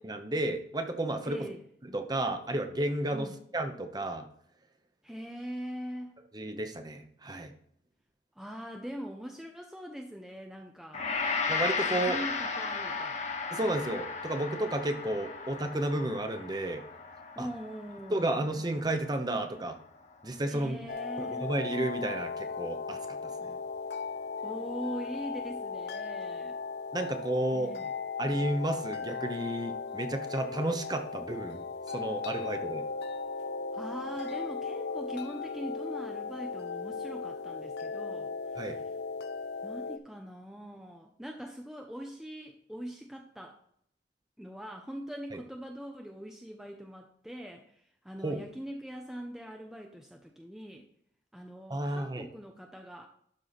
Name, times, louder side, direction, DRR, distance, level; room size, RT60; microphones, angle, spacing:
voice 1, 0.0-1.4 1.9-3.3 3.5-4.3 6.3-7.5 11.5-12.2 13.5-16.8 17.4-17.5 18.1-19.8 20.2-20.8 21.2-23.6 26.9-27.7 28.2-31.6 31.9-32.8 38.6-38.8 45.3-45.4 48.2-48.4 51.7-52.3, right 1 dB, 25° right, 6 dB, 0.9 m, -32 dB
voice 2, 1.2-1.6 3.1-3.3 5.0-6.1 8.4-11.1 11.9-13.2 17.4-18.3 20.5-21.5 24.4-26.6 27.5-27.9 32.3-32.5 33.7-38.8 39.6-43.6 44.4-50.9 51.3-53.1, equal, 5° right, 2 dB, 0.6 m, -42 dB
Gong, 10.9-20.1, left 4 dB, 40° left, 1.1 m, -35 dB
sound 1, 20.9-40.0, left 4 dB, 65° left, 0.6 m, -37 dB
12.0 x 4.5 x 4.1 m, 0.67 s
head